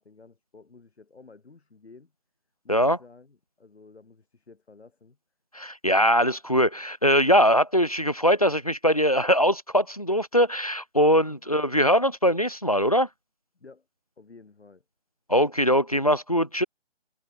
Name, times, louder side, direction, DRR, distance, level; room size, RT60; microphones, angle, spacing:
voice 1, 0.0-2.1 2.6-5.2 11.3-11.4 13.5-13.9 14.2-14.8, left 4 dB, 60° left, 4.9 m, -52 dB
voice 2, 5.5-13.1 15.3-16.6, equal, 35° left, 0.4 m, -22 dB
figure-of-eight pair, 160°, 36 cm